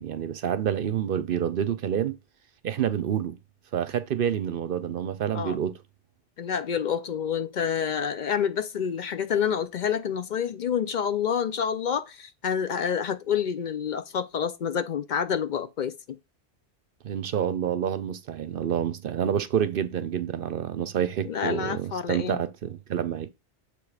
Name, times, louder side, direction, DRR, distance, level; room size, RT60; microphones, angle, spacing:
voice 1, 0.0-2.2 2.6-3.4 3.7-5.8 17.0-23.3, right 9 dB, 60° right, 0.7 m, -28 dB
voice 2, 6.4-15.9 21.3-22.4, left 8 dB, 60° left, 0.5 m, -28 dB
6.9 x 3.3 x 4.8 m
omnidirectional pair, 1.2 m